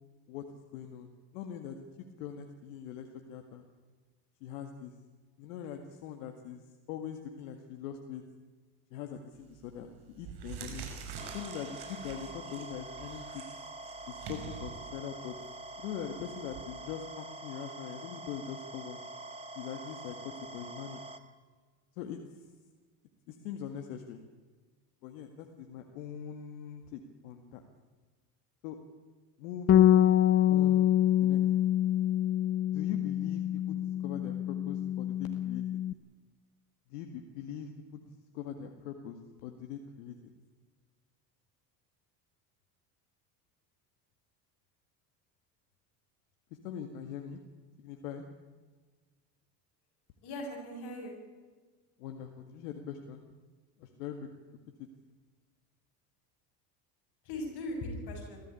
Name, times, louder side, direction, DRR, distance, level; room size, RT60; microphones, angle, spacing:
voice 1, 0.7-1.8 2.2-3.6 4.4-4.9 5.4-6.6 6.9-8.2 8.9-10.8 11.3-13.4 14.1-15.4 15.8-19.0 19.6-21.0 22.0-22.5 23.3-24.2 25.0-27.6 28.6-28.8 29.4-30.2 30.5-31.4 32.7-35.6 36.9-40.2 46.6-47.4 47.8-48.2 52.0-53.2 53.8-54.3 54.8-54.9, left 8 dB, 85° left, 4 dB, 2.0 m, -42 dB
sound 1, 9.4-9.7 10.1-16.6, right 6 dB, 60° right, 5.9 m, -46 dB
sound 2, 11.2-21.2, right 2 dB, 15° right, 1.8 m, -45 dB
Bass guitar, 29.7-35.9, left 11 dB, 30° left, 0.6 m, -26 dB
voice 2, 50.2-51.1 57.2-58.4, left 1 dB, 60° left, 1 dB, 6.9 m, -39 dB
21.0 x 15.0 x 10.0 m, 1.4 s
supercardioid pair, 95°, 44 cm